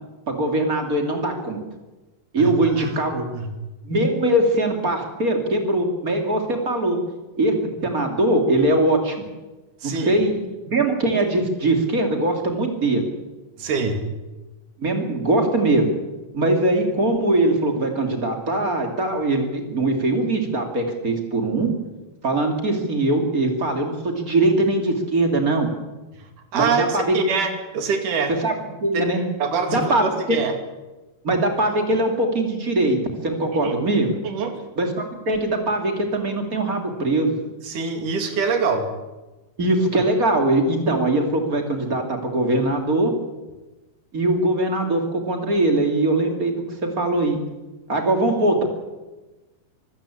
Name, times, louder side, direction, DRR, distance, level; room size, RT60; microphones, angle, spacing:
voice 1, 0.3-1.6 2.3-3.3 3.9-7.0 7.4-7.6 7.8-9.3 9.8-13.0 14.8-15.9 16.3-21.7 22.2-25.7 26.5-27.4 28.4-28.6 28.8-29.2 29.7-30.4 31.2-34.1 34.8-37.3 39.6-43.1 44.1-46.6 46.8-47.4 47.9-48.6, right 2 dB, 25° right, 4 dB, 3.2 m, -21 dB
voice 2, 2.4-3.5 9.8-10.2 13.6-14.0 26.5-28.3 29.4-30.5 33.6-33.7 34.2-34.6 37.6-38.9, right 5 dB, 75° right, 6 dB, 4.0 m, -25 dB
25.5 x 15.0 x 8.7 m, 1.1 s
omnidirectional pair, 3.7 m